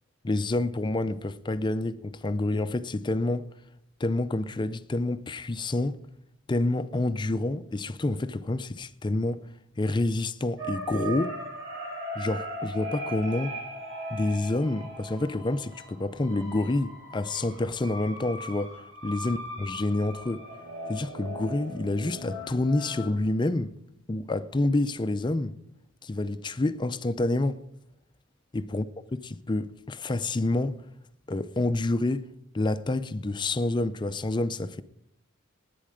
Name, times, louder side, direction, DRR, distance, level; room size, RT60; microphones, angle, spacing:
voice 1, 0.2-3.5 4.0-6.0 6.5-9.4 9.8-11.3 12.2-13.6 14.1-20.5 20.9-23.7 24.1-25.6 26.0-27.6 28.5-28.8 29.3-30.8 31.3-32.3 32.5-34.8, left 2 dB, 20° left, 0.5 m, -28 dB
sound 1, 10.6-23.1, equal, 65° right, 7.2 m, -39 dB
17.5 x 9.4 x 5.0 m
head